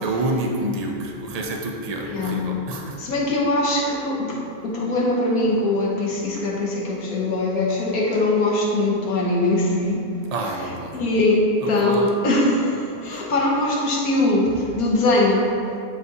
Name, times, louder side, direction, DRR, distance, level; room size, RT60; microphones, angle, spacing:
voice 1, 0.0-3.0 10.3-11.0 11.6-12.1 13.1-13.3, right 2 dB, 60° right, 1 dB, 0.4 m, -28 dB
voice 2, 2.1-2.4 3.0-4.4 4.6-10.0 10.9-15.5, left 2 dB, 80° left, -2 dB, 1.5 m, -21 dB
7.8 x 4.9 x 2.7 m, 2.4 s
omnidirectional pair, 1.5 m